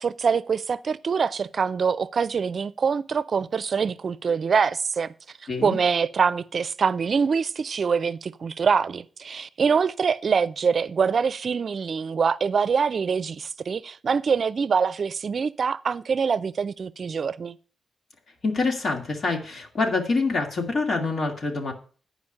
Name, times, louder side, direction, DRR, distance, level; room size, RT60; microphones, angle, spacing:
voice 1, 0.0-5.1 5.6-17.6, right 6 dB, 60° right, 0.5 m, -24 dB
voice 2, 5.5-5.8 18.4-21.7, left 3 dB, 65° left, 2.3 m, -26 dB
9.6 x 5.1 x 6.4 m
cardioid pair, 70°, 0 cm